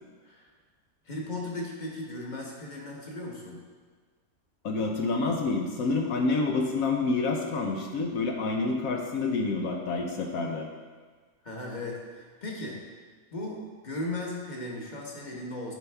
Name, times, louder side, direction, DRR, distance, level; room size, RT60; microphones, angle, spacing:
voice 1, 1.0-3.6 11.4-12.8 13.3-15.7, left 2 dB, 35° left, -2 dB, 1.3 m, -37 dB
voice 2, 4.6-10.7, left 3 dB, 75° left, 1 dB, 1.2 m, -28 dB
10.5 x 5.5 x 3.5 m, 1.5 s
omnidirectional pair, 1.5 m